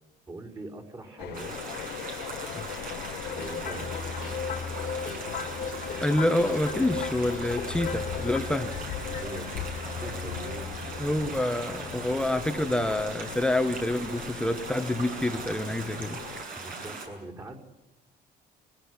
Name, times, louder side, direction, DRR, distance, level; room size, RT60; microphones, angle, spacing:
voice 1, 0.3-1.6 3.3-4.0 9.1-10.9 11.6-11.9 16.5-17.6, right 2 dB, 25° right, -1 dB, 5.0 m, -42 dB
sound 1, 1.2-16.4, left 13 dB, 85° left, 0.9 m, -41 dB
sound 2, 1.3-17.1, right 3 dB, 55° right, 6.8 m, -39 dB
sound 3, 3.2-12.4, left 6 dB, 55° left, 2.2 m, -37 dB
voice 2, 6.0-8.7 11.0-16.2, left 1 dB, 5° left, 8 dB, 1.3 m, -27 dB
23.0 x 16.5 x 9.8 m, 0.99 s
cardioid pair, 110°, 17 cm